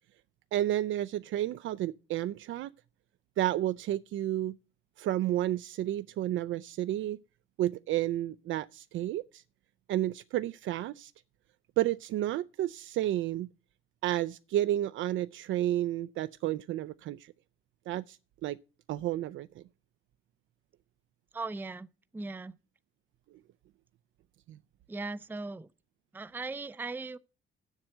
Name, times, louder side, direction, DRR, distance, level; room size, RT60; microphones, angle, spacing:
voice 1, 0.5-2.7 3.4-4.5 5.0-7.2 7.6-9.4 9.9-11.1 11.8-13.5 14.0-17.3 17.9-18.2 18.4-18.6 18.9-19.6 24.5-24.6, right 13 dB, 75° right, 0.5 m, -31 dB
voice 2, 21.3-21.9 22.1-22.5 24.9-25.7 26.1-27.2, right 3 dB, 10° right, 0.5 m, -38 dB
7.5 x 7.3 x 7.7 m
cardioid pair, 90°, 20 cm